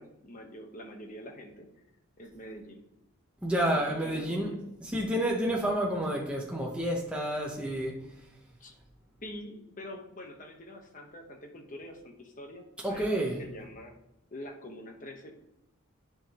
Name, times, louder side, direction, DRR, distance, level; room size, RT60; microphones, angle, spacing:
voice 1, 0.0-1.7 2.2-2.8 3.7-4.6 8.6-8.7 9.2-13.9 14.3-15.3, left 1 dB, 35° left, 3 dB, 1.0 m, -45 dB
voice 2, 3.4-4.5 4.8-8.1 12.8-13.4, right 1 dB, 5° right, -2 dB, 0.8 m, -29 dB
11.0 x 4.9 x 2.9 m, 0.93 s
head